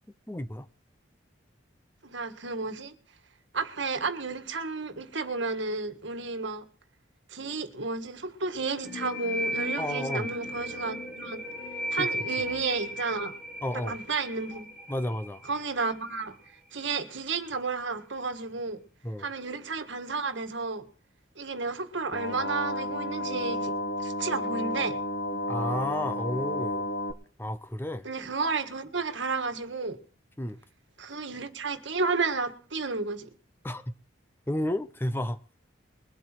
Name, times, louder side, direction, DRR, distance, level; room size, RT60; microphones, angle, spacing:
voice 1, 0.3-0.7 9.8-10.3 12.0-12.1 13.6-14.0 14.9-15.4 19.0-19.3 25.5-26.9 27.4-28.1 30.4-30.6 33.6-33.9 34.5-35.4, left 1 dB, 10° left, 0.6 m, -32 dB
voice 2, 2.0-2.9 3.5-6.7 7.3-11.4 11.9-13.3 13.7-14.7 15.5-16.4 16.7-18.8 19.2-20.9 21.4-23.7 24.0-25.0 28.0-30.0 31.0-33.3, right 4 dB, 65° right, 1.7 m, -32 dB
sound 1, 8.8-16.3, equal, 5° right, 2.0 m, -35 dB
sound 2, 22.1-27.1, left 1 dB, 55° left, 1.4 m, -32 dB
22.0 x 8.2 x 4.5 m
head